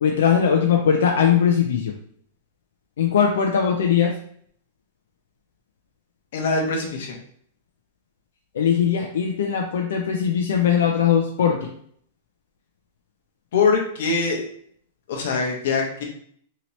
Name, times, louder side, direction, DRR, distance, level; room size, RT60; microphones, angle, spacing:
voice 1, 0.0-1.9 3.0-4.1 8.5-11.7, left 8 dB, 80° left, 2 dB, 0.4 m, -20 dB
voice 2, 6.3-7.2 13.5-14.4 15.1-16.0, left 4 dB, 55° left, 1 dB, 0.8 m, -22 dB
2.8 x 2.8 x 3.0 m, 0.62 s
supercardioid pair, 175°, 0 cm